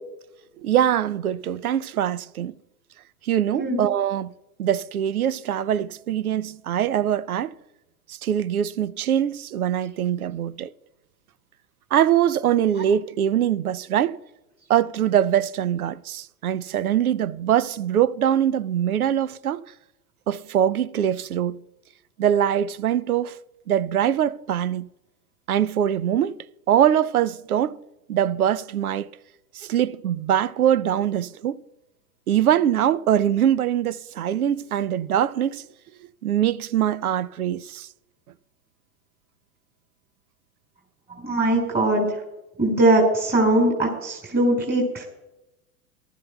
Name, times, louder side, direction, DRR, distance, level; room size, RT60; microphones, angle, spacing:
voice 1, 0.6-2.5 3.2-4.3 4.6-7.5 8.2-10.7 11.9-14.2 14.7-19.6 20.3-21.6 22.2-23.4 23.7-24.9 25.5-26.4 26.7-27.8 28.1-29.1 29.6-31.6 32.3-35.6 36.2-37.9, right 10 dB, 85° right, 0.6 m, -23 dB
voice 2, 41.2-42.1 42.6-45.0, right 1 dB, 20° right, 5.0 m, -20 dB
22.5 x 13.0 x 2.3 m
hypercardioid pair, 90°, 42 cm